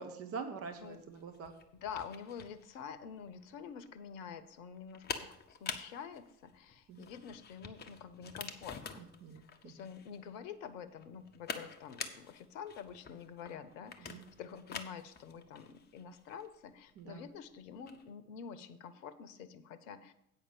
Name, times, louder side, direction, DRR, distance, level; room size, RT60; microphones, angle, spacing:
voice 1, 0.0-1.5 6.9-7.1 9.0-9.7 14.0-14.2 17.0-17.2, right 5 dB, 30° right, 7 dB, 0.9 m, -45 dB
sound 1, 0.7-18.1, left 6 dB, 20° left, 0.8 m, -48 dB
voice 2, 1.7-9.0 9.6-20.1, left 7 dB, 55° left, 13 dB, 0.9 m, -47 dB
8.6 x 5.4 x 7.1 m, 0.80 s
figure-of-eight pair, 75°, 46 cm